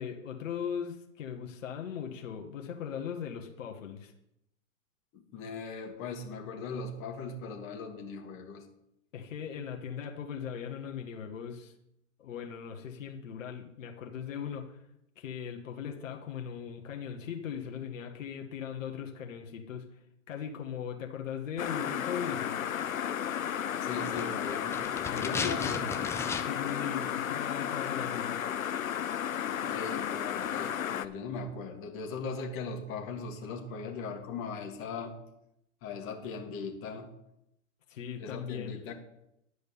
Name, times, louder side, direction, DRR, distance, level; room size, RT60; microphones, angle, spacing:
voice 1, 0.0-4.1 9.1-11.7 12.2-14.8 15.1-19.8 20.3-22.6 25.0-25.9 26.4-28.4 37.9-38.8, left 8 dB, 70° left, 2 dB, 1.7 m, -39 dB
voice 2, 5.1-8.6 23.8-24.8 25.1-25.9 29.6-35.1 35.8-37.1 38.2-38.9, left 4 dB, 30° left, 1 dB, 2.1 m, -39 dB
sound 1, 21.6-31.1, left 9 dB, 90° left, 0.8 m, -33 dB
sound 2, 23.9-26.8 27.0-27.1, left 4 dB, 5° left, 0.5 m, -37 dB
11.0 x 5.1 x 8.5 m, 0.80 s
hypercardioid pair, 125°, 40 cm